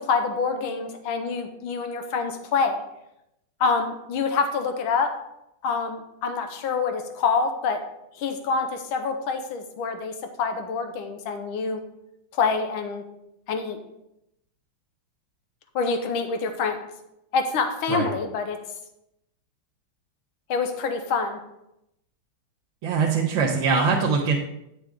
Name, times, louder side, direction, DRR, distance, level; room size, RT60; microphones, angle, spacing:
voice 1, 0.0-2.8 3.6-5.2 5.6-7.9 8.2-11.8 12.3-13.0 13.5-13.8 15.7-16.9 17.3-18.6 20.5-21.4, left 4 dB, 80° left, 7 dB, 1.7 m, -26 dB
voice 2, 22.8-24.4, right 5 dB, 70° right, -4 dB, 1.6 m, -22 dB
8.9 x 6.2 x 3.6 m, 0.84 s
omnidirectional pair, 2.3 m